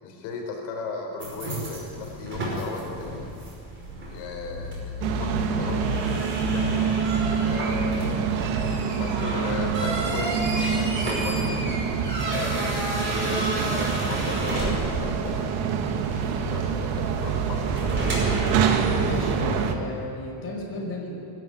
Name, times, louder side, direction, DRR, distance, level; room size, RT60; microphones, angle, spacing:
voice 1, 0.0-3.3 4.1-6.9 7.4-8.5 8.9-11.8 12.5-15.7 16.1-18.0, left 3 dB, 65° left, 1 dB, 4.4 m, -36 dB
sound 1, 1.2-19.3, right 1 dB, 25° right, 5.1 m, -32 dB
sound 2, 5.0-19.7, right 6 dB, 65° right, 1.9 m, -26 dB
voice 2, 19.0-21.2, left 1 dB, 25° left, -2 dB, 5.1 m, -33 dB
23.0 x 12.5 x 9.6 m, 2.6 s
cardioid pair, 165°, 50 cm